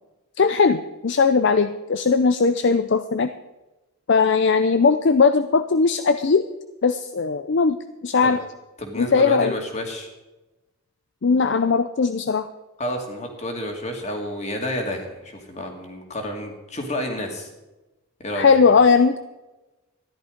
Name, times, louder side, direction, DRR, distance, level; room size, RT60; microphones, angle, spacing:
voice 1, 0.4-3.3 4.1-6.5 6.8-7.8 8.0-8.4 9.0-9.5 11.2-12.5 18.3-19.2, left 5 dB, 55° left, 10 dB, 0.5 m, -18 dB
voice 2, 8.8-10.1 12.8-17.5 18.2-18.7, equal, 30° left, 3 dB, 2.2 m, -30 dB
13.5 x 11.0 x 5.1 m, 1.1 s
head